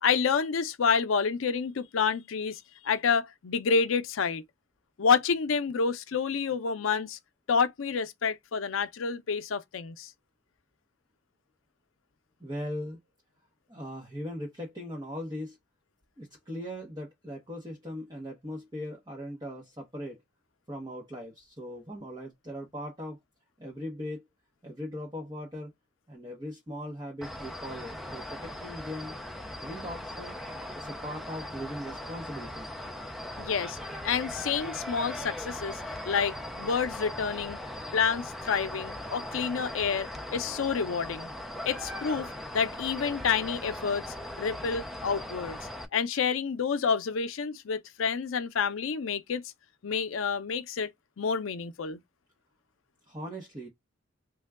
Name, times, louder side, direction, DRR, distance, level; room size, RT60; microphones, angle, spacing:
voice 1, 0.0-4.4 5.0-7.2 7.5-10.1 33.4-33.8 34.0-35.8 36.1-37.6 37.9-41.3 41.7-44.0 44.4-45.6 45.9-49.4 49.8-50.9 51.2-52.0, left 6 dB, 85° left, 0.5 m, -28 dB
voice 2, 12.4-13.0 13.7-15.6 16.2-20.2 20.7-23.2 23.6-24.3 24.6-25.7 26.1-29.2 29.6-30.4 30.8-32.7 53.1-53.7, equal, 20° right, 0.7 m, -39 dB
sound 1, 27.2-45.8, left 1 dB, ahead, 0.4 m, -39 dB
3.3 x 2.2 x 3.5 m
head